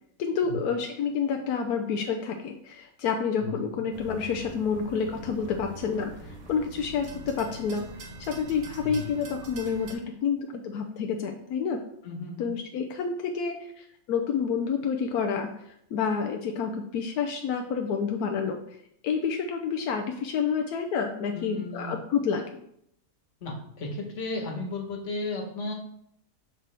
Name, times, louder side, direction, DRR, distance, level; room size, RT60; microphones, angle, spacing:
voice 1, 0.2-7.9 8.3-11.8 12.4-18.6 19.0-22.5, left 6 dB, 80° left, 4 dB, 1.2 m, -29 dB
sound 1, 3.9-9.9, right 1 dB, 70° right, 1.4 m, -43 dB
voice 2, 12.0-12.5 21.3-21.9 23.4-25.7, left 2 dB, 50° left, 1 dB, 1.6 m, -34 dB
6.7 x 6.1 x 3.4 m, 0.73 s
omnidirectional pair, 1.6 m